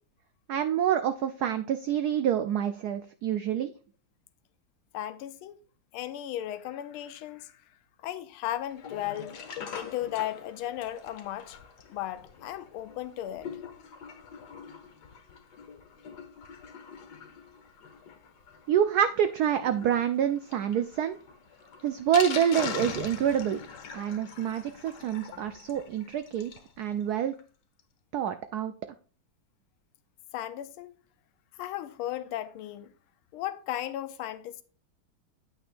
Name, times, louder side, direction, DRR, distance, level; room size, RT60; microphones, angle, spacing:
voice 1, 0.5-3.7 18.7-21.2 21.8-23.6 23.9-26.5 26.8-27.3 28.1-28.7, right 9 dB, 85° right, 0.8 m, -27 dB
voice 2, 4.9-5.6 5.9-7.6 8.0-9.4 9.7-11.6 11.9-13.5 30.3-30.9 31.6-32.9 33.3-34.6, left 12 dB, 90° left, 1.5 m, -35 dB
Sink (filling or washing), 8.7-26.7 27.1-27.2 27.3-27.4 27.8-27.9, left 6 dB, 60° left, 1.6 m, -43 dB
8.9 x 8.9 x 2.5 m
omnidirectional pair, 2.3 m